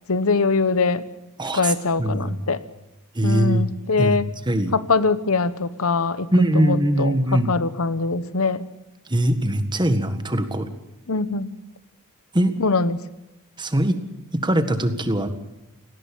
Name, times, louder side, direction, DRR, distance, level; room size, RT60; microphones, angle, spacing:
voice 1, 0.1-1.0 1.5-2.6 3.2-4.3 4.7-6.3 6.5-7.2 7.5-8.7 11.1-11.6 12.6-13.0, left 4 dB, 65° left, 14 dB, 1.1 m, -22 dB
voice 2, 1.4-1.7 2.0-2.4 3.1-3.7 4.0-4.2 4.5-4.7 6.3-7.5 9.1-10.7 12.3-12.5 13.6-14.0 14.3-15.3, right 1 dB, 20° right, 9 dB, 1.7 m, -21 dB
18.5 x 16.5 x 8.9 m, 0.96 s
head